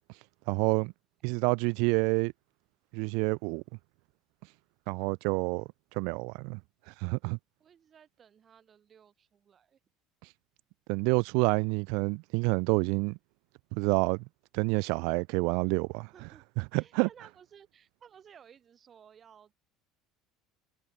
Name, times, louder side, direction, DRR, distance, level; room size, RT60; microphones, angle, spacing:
voice 1, 0.5-0.9 1.2-2.3 2.9-3.6 4.9-5.6 6.0-6.6 7.0-7.4 10.9-13.2 13.7-14.2 14.5-16.1 16.6-17.1, right 33 dB, 60° right, 0.4 m, -28 dB
voice 2, 7.6-9.8 16.1-16.4 16.7-19.5, right 8 dB, 35° right, 5.3 m, -57 dB
figure-of-eight pair, 65°, 0 cm